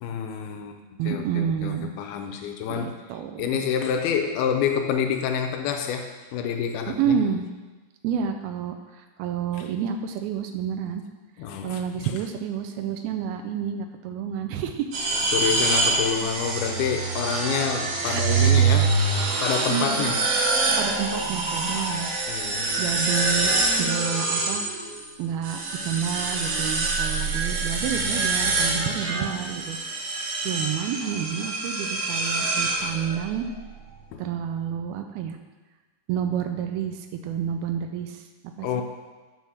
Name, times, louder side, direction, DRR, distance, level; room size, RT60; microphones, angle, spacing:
voice 1, 0.0-3.0 3.4-7.2 11.4-11.8 15.1-19.0 19.4-20.2 22.3-23.0 34.1-34.2 38.6-38.8, left 7 dB, 80° left, 4 dB, 2.5 m, -28 dB
voice 2, 1.0-1.9 2.3-2.4 2.8-3.6 6.9-7.5 8.0-11.0 11.6-14.9 18.0-18.6 19.2-20.1 20.8-22.1 22.8-23.5 23.8-24.7 25.2-29.8 30.4-33.5 34.2-35.4 36.1-38.7, right 8 dB, 85° right, 6 dB, 2.4 m, -29 dB
sound 1, 14.9-25.0 25.4-33.3, right 3 dB, 60° right, 1.8 m, -25 dB
8.0 x 5.6 x 6.3 m, 1.3 s
omnidirectional pair, 4.6 m